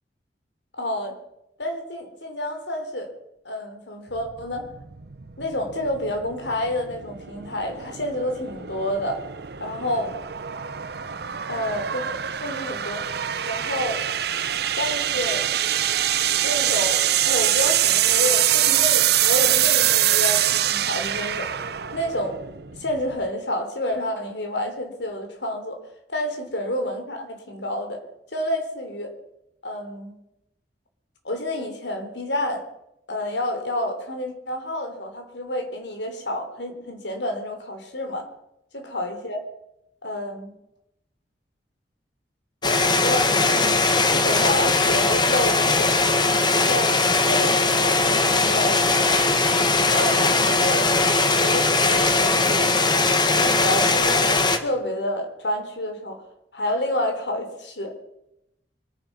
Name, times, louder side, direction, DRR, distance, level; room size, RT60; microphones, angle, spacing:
voice 1, 0.8-1.2 1.6-3.1 3.5-4.7 5.4-9.2 9.6-10.2 11.5-12.1 12.4-13.0 13.5-14.0 14.8-15.5 16.4-21.5 21.9-22.4 22.8-25.8 26.1-28.0 28.3-29.1 29.6-30.2 31.2-32.6 33.1-38.3 38.7-39.4 40.0-40.5 42.6-45.9 46.5-46.9 47.3-48.9 49.9-50.9 51.4-56.2 56.5-57.9, left 1 dB, 85° left, 5 dB, 3.5 m, -29 dB
sound 1, 4.1-23.3, right 11 dB, 60° right, 0.7 m, -24 dB
sound 2, 42.6-54.6, left 3 dB, 25° left, 1.3 m, -20 dB
24.5 x 9.8 x 6.1 m, 0.85 s
head